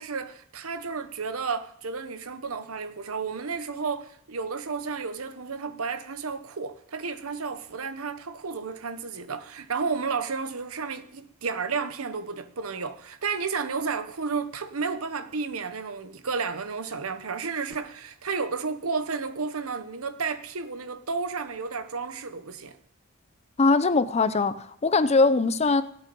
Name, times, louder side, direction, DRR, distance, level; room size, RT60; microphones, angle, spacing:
voice 1, 0.0-22.8, right 5 dB, 80° right, 1.0 m, -32 dB
voice 2, 23.6-25.8, left 3 dB, 30° left, 0.6 m, -21 dB
17.5 x 8.3 x 5.4 m
head